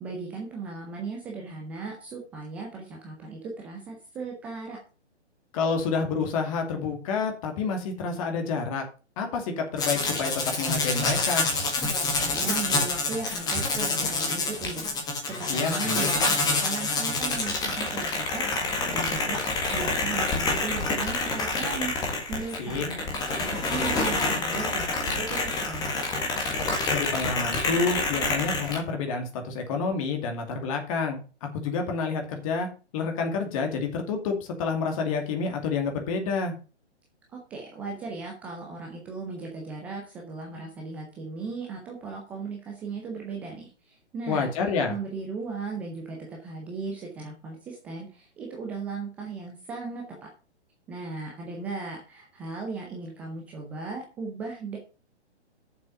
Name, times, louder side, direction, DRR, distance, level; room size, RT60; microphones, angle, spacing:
voice 1, 0.0-4.8 12.2-14.9 15.4-19.4 19.7-21.9 22.3-23.0 23.4-26.1 37.3-44.5 44.9-50.3 50.9-54.8, right 4 dB, 5° right, 0 dB, 0.5 m, -37 dB
voice 2, 5.5-8.8 9.2-11.5 15.5-16.1 22.6-22.8 26.9-31.2 31.5-32.7 32.9-36.5 44.3-45.0, left 4 dB, 30° left, 4 dB, 2.4 m, -28 dB
sound 1, 9.8-28.8, left 3 dB, 10° left, 1.6 m, -27 dB
8.6 x 7.1 x 5.5 m, 0.34 s
figure-of-eight pair, 130°, 34 cm